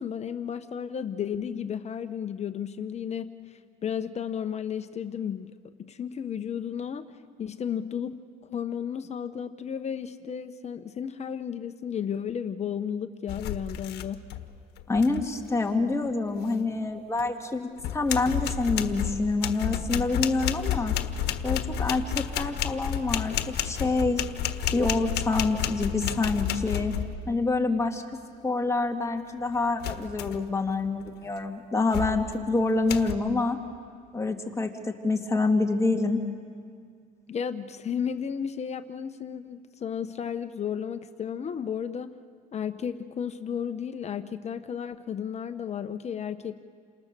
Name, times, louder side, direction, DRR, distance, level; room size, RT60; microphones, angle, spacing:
voice 1, 0.0-5.5 5.9-7.0 7.4-8.1 8.4-14.2 37.3-42.1 42.5-46.6, left 8 dB, 40° left, 10 dB, 1.0 m, -33 dB
sound 1, 13.3-14.5 14.8-15.3 17.2-17.3 17.8-27.3 29.8-30.5 31.0-31.3 31.9-32.4 32.9-33.1, left 9 dB, 75° left, 1.4 m, -31 dB
voice 2, 14.9-21.0 21.4-23.3 23.6-24.2 24.7-26.9 27.3-28.0 28.4-33.6 34.1-36.2, left 3 dB, 15° left, 3 dB, 2.0 m, -27 dB
29.0 x 27.5 x 6.8 m, 2.1 s
cardioid pair, 110°, 17 cm